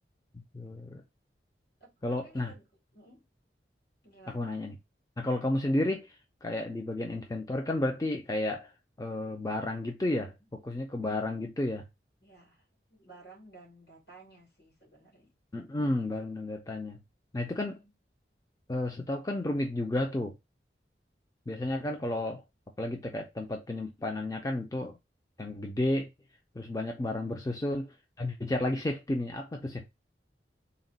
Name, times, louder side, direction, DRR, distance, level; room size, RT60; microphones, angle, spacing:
voice 1, 0.3-1.0 2.0-2.5 4.3-4.8 5.2-8.7 9.0-11.8 15.5-17.0 17.3-17.8 18.7-20.3 21.5-22.4 22.8-25.0 25.4-26.1 26.6-29.9, left 1 dB, 20° left, 0.4 m, -32 dB
voice 2, 1.8-2.7 2.9-3.2 4.0-4.5 10.2-10.4 12.2-15.3 17.6-17.9, right 2 dB, 70° left, 2.5 m, -55 dB
4.0 x 2.2 x 3.9 m
head